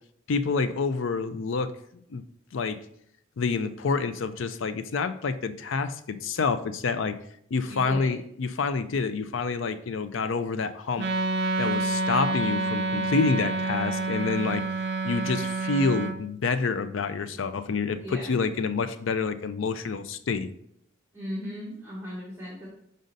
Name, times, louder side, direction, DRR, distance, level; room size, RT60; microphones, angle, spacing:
voice 1, 0.3-1.7 2.1-2.2 2.5-2.8 3.4-7.2 7.5-11.1 11.6-14.6 15.0-20.5, left 4 dB, 75° left, 12 dB, 0.4 m, -28 dB
voice 2, 7.6-8.1 18.0-18.3 21.1-22.7, equal, 15° right, -5 dB, 1.3 m, -37 dB
Wind instrument woodwind instrument, 11.0-16.2, right 2 dB, 55° right, 0.4 m, -28 dB
5.2 x 5.2 x 3.9 m, 0.71 s
head